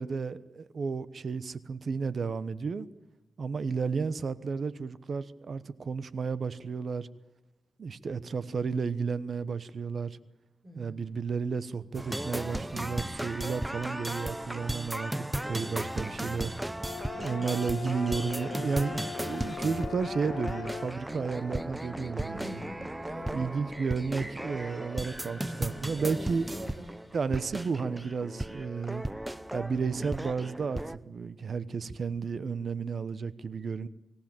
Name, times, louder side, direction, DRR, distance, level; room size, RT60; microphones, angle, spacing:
voice 1, 0.0-2.9 3.4-7.1 7.8-10.2 10.8-16.5 17.2-22.6 23.3-26.4 27.1-29.0 29.5-33.9, right 5 dB, 50° right, 16 dB, 1.0 m, -32 dB
voice 2, 10.6-11.0 17.1-17.5 22.3-23.5 25.9-26.9, right 1 dB, 35° right, 5 dB, 6.4 m, -44 dB
sound 1, 11.9-31.0, right 1 dB, 10° right, 0.7 m, -36 dB
sound 2, 16.8-20.9, left 8 dB, 80° left, 2.2 m, -41 dB
sound 3, 18.9-27.1, left 1 dB, 10° left, 7.9 m, -51 dB
25.0 x 16.0 x 9.0 m, 1.0 s
wide cardioid pair, 105°, 0 cm